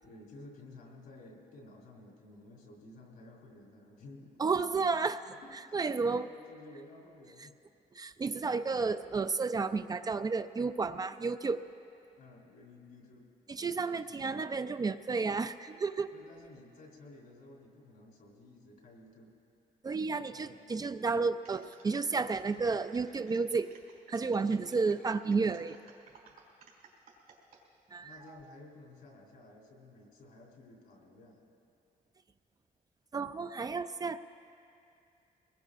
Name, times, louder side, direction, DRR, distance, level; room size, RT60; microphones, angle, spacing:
voice 1, 0.0-4.4 5.2-7.5 12.2-13.3 13.9-14.4 16.1-19.3 20.2-20.6 28.0-31.4, left 2 dB, 80° left, -1 dB, 3.3 m, -54 dB
voice 2, 4.4-5.2 5.7-6.3 8.0-11.7 13.5-16.1 19.8-23.7 24.1-25.8 27.9-28.2 33.1-34.2, right 4 dB, 25° right, 10 dB, 0.3 m, -32 dB
sound 1, 21.4-27.6 28.1-28.5, right 6 dB, 80° right, 3.6 m, -59 dB
23.5 x 20.0 x 2.5 m, 2.6 s
cardioid pair, 125°, 15 cm